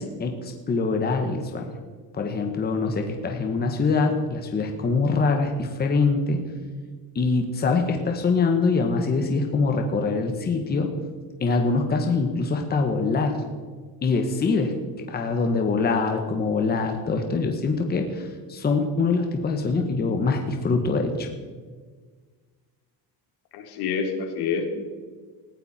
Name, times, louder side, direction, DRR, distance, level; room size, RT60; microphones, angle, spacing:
voice 1, 0.0-1.8 2.1-6.4 7.1-10.9 11.4-13.4 14.0-21.3, left 4 dB, 25° left, 4 dB, 1.5 m, -24 dB
voice 2, 23.5-24.6, left 6 dB, 70° left, 4 dB, 3.1 m, -27 dB
20.0 x 15.0 x 4.4 m, 1.5 s
cardioid pair, 160°, 40 cm